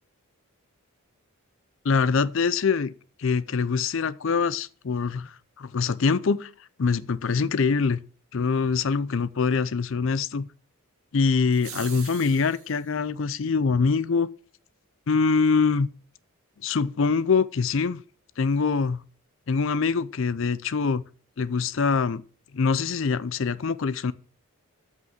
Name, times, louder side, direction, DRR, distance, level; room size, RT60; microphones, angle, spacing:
voice 1, 1.8-2.9 3.2-6.5 6.8-8.0 8.3-10.5 11.1-14.3 15.1-15.9 16.6-18.0 18.4-19.0 19.5-21.0 21.4-22.2 22.5-24.1, left 5 dB, 55° left, 0.5 m, -24 dB
sound 1, 11.5-12.8, right 9 dB, 70° right, 1.9 m, -42 dB
8.0 x 5.7 x 7.3 m
head